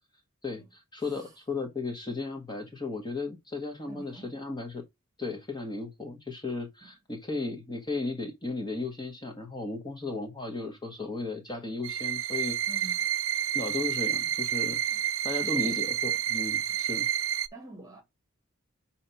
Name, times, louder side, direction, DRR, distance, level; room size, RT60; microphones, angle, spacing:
voice 1, 0.4-4.8 5.2-12.6 13.5-14.8 15.2-17.1, left 3 dB, 20° left, 1.0 m, -35 dB
voice 2, 3.9-4.5 6.8-6.9 12.7-13.0 14.9-15.0 15.4-15.8 16.7-16.9 17.5-18.0, right 2 dB, 15° right, 1.5 m, -47 dB
sound 1, 11.8-17.5, right 10 dB, 65° right, 0.4 m, -29 dB
6.4 x 2.9 x 5.5 m
head